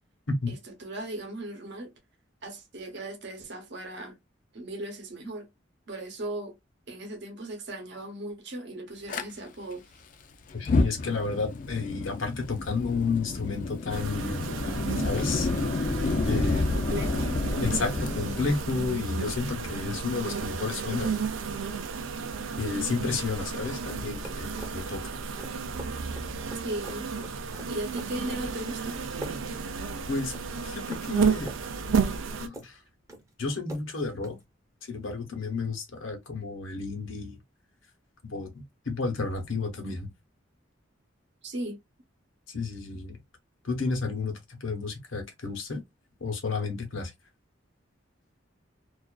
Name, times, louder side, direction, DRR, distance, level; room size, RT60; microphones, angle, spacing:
voice 1, 0.5-1.9 2.4-4.2 4.5-5.5 5.9-6.6 6.9-9.8 16.5-17.3 26.6-27.1 27.7-29.0 41.4-41.8, right 1 dB, 60° right, 0.8 m, -37 dB
Fire, 9.1-9.2 10.5-19.6, left 3 dB, 40° left, 0.3 m, -30 dB
voice 2, 10.5-14.4 15.0-15.5 16.3-16.6 17.6-21.2 22.6-25.0 30.1-30.3 30.6-31.5 32.4-32.8 33.4-34.4 34.9-37.4 38.2-40.1 42.5-43.2 43.6-45.8 46.2-47.1, left 4 dB, 90° left, 0.9 m, -31 dB
sound 1, 13.9-32.5, right 5 dB, 85° right, 0.4 m, -32 dB
sound 2, 24.2-34.4, right 1 dB, 15° right, 0.6 m, -46 dB
2.4 x 2.3 x 2.2 m
head